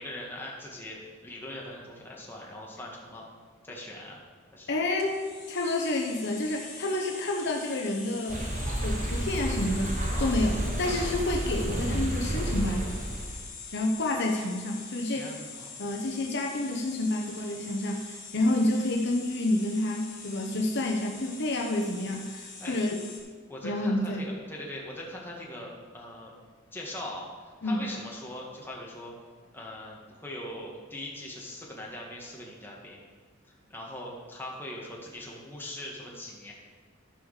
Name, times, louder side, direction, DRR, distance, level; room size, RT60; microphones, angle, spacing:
voice 1, 0.0-3.2 3.6-4.2 4.5-4.8 10.1-10.4 15.0-15.7 22.6-22.8 23.5-26.3 26.7-27.3 27.6-29.1 29.5-33.0 33.7-36.5, left 1 dB, 10° left, -3 dB, 1.7 m, -41 dB
voice 2, 4.7-5.2 5.5-8.4 8.8-9.9 10.2-13.0 13.7-15.3 15.8-23.0 23.6-24.3 27.6-27.9, left 1 dB, 50° left, 1 dB, 0.9 m, -29 dB
sound 1, 5.0-23.2, left 4 dB, 35° left, 2.8 m, -44 dB
sound 2, 8.3-13.4, right 1 dB, 35° right, 1.2 m, -30 dB
13.5 x 4.9 x 6.5 m, 1.6 s
head